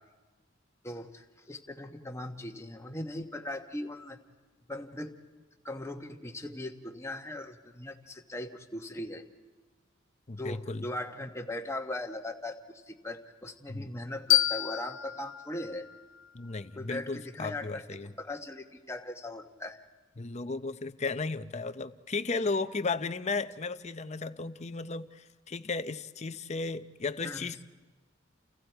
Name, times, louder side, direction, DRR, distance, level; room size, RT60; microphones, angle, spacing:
voice 1, 0.8-4.2 4.7-5.2 5.6-9.2 10.3-15.9 16.8-17.8 18.2-19.8 27.2-27.5, left 1 dB, 15° left, 4 dB, 1.3 m, -39 dB
voice 2, 10.3-10.9 13.7-13.9 16.3-18.1 20.2-27.6, left 3 dB, 35° left, 12 dB, 0.7 m, -35 dB
sound 1, 14.3-17.1, left 13 dB, 85° left, 0.6 m, -30 dB
29.0 x 29.0 x 4.6 m, 1.3 s
head